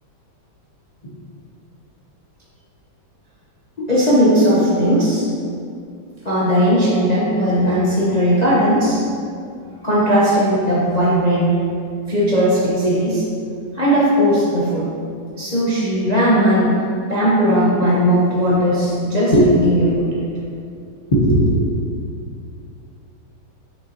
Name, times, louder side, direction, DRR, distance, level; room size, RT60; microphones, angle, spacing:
voice 1, 3.8-5.3 6.2-9.0 9.8-11.6 12.1-13.2 13.7-14.9 15.4-16.7 17.1-20.2 21.1-21.5, equal, 35° left, -8 dB, 0.6 m, -17 dB
7.4 x 5.2 x 2.9 m, 2.4 s
omnidirectional pair, 2.3 m